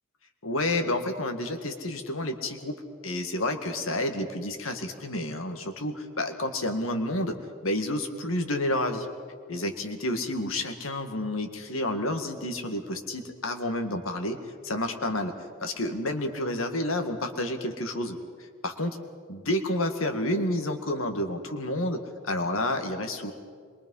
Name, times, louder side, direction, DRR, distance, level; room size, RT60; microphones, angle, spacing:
voice 1, 0.4-2.8 3.0-7.4 7.6-9.1 9.5-14.4 14.6-15.3 15.6-18.2 18.6-19.0 19.3-23.3, left 1 dB, 85° left, 6 dB, 2.0 m, -30 dB
26.0 x 22.5 x 5.6 m, 2.1 s
head